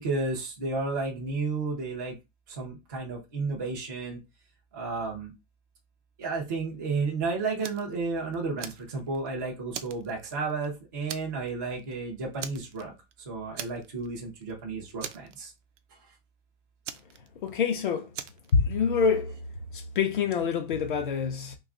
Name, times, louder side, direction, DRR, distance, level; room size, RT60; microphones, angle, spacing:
voice 1, 0.0-2.2 2.5-4.2 4.7-5.3 6.2-12.9 13.3-15.5, right 3 dB, 20° right, 0.3 m, -32 dB
Fire, 7.6-7.9 8.3-9.3 9.7-10.7 11.1-11.5 11.8-11.9 12.4-13.1 13.6-14.1 14.4-14.5 15.0-15.8 16.8-17.7 18.1-18.5, right 9 dB, 85° right, 0.6 m, -40 dB
voice 2, 17.4-18.1 18.5-19.3 19.7-21.6, left 5 dB, 45° left, 0.5 m, -26 dB
2.9 x 2.3 x 3.6 m
hypercardioid pair, 170°, 35 cm